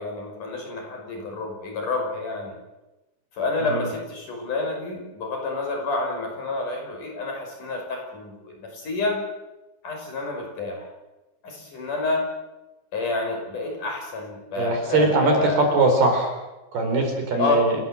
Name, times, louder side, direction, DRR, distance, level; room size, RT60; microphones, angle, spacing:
voice 1, 0.0-2.5 3.3-9.2 9.8-10.9 11.4-12.2 12.9-15.6 17.4-17.8, left 2 dB, 40° left, 2 dB, 6.7 m, -28 dB
voice 2, 14.6-16.3 16.7-17.8, right 2 dB, 55° right, 4 dB, 6.0 m, -21 dB
29.0 x 19.5 x 7.9 m, 1.0 s
omnidirectional pair, 5.6 m